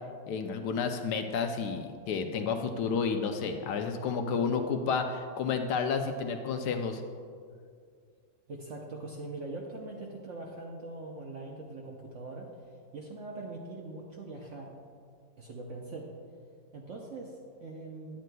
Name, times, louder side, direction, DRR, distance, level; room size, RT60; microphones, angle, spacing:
voice 1, 0.3-7.0, left 5 dB, 75° left, 6 dB, 1.1 m, -31 dB
voice 2, 8.5-12.5 12.9-14.7 15.4-16.1 16.7-18.2, right 2 dB, 60° right, -1 dB, 0.8 m, -42 dB
10.0 x 9.1 x 2.2 m, 2.1 s
omnidirectional pair, 1.9 m